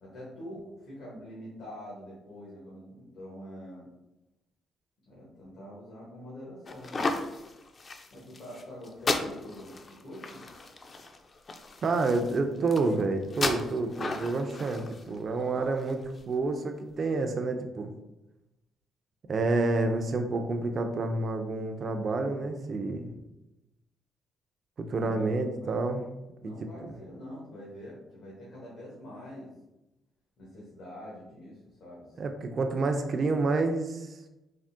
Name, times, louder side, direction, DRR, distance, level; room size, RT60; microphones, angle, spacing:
voice 1, 0.0-3.9 5.1-7.2 8.1-10.5 25.0-25.8 26.4-29.5 30.4-32.6, equal, 75° left, -6 dB, 0.9 m, -45 dB
sound 1, 6.7-16.2, left 3 dB, 40° left, 0.3 m, -35 dB
voice 2, 11.8-17.9 19.3-23.1 24.8-26.0 26.4-26.7 32.2-34.1, right 3 dB, 45° right, 5 dB, 0.3 m, -29 dB
3.4 x 2.1 x 2.5 m, 0.95 s
cardioid pair, 90°, 0 cm